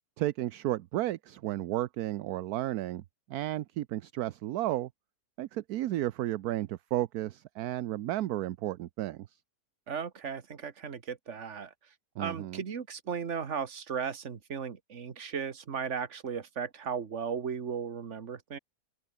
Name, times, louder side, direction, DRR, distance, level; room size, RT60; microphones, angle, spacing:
voice 1, 0.2-3.0 3.3-4.9 5.4-9.4 12.2-12.6, right 14 dB, 70° right, 1.1 m, -33 dB
voice 2, 9.9-11.7 12.2-18.6, right 6 dB, 45° right, 1.7 m, -36 dB
open air
omnidirectional pair, 1.7 m